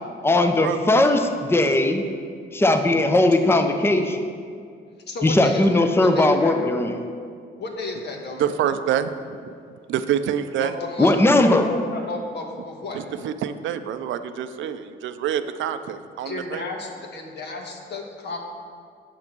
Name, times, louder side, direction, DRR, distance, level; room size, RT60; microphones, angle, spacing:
voice 1, 0.2-2.0 2.5-4.2 5.2-7.0 11.0-11.7, left 2 dB, 10° left, 6 dB, 0.7 m, -18 dB
voice 2, 5.1-6.7 7.6-8.5 10.6-13.0 16.2-18.4, left 3 dB, 60° left, 2 dB, 1.4 m, -33 dB
voice 3, 8.4-9.1 9.4-9.5 9.9-10.7 12.9-16.6, right 9 dB, 75° right, 10 dB, 0.5 m, -26 dB
7.9 x 5.9 x 6.0 m, 2.2 s
cardioid pair, 90°, 20 cm